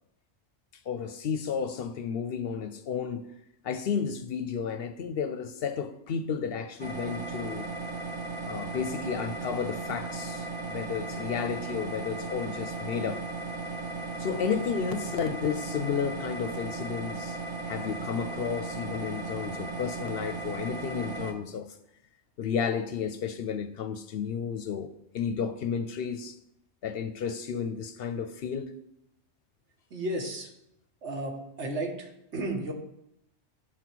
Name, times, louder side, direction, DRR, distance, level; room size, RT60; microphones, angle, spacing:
voice 1, 0.9-3.3 3.6-7.7 8.4-13.2 14.2-17.4 17.7-21.7 22.4-26.4 26.8-28.7, left 7 dB, 65° left, 0.7 m, -32 dB
sound 1, 6.8-21.3, right 3 dB, 30° right, 0.8 m, -36 dB
voice 2, 29.9-30.5 31.0-32.7, right 1 dB, 80° right, 1.6 m, -33 dB
11.5 x 4.0 x 4.6 m
omnidirectional pair, 1.2 m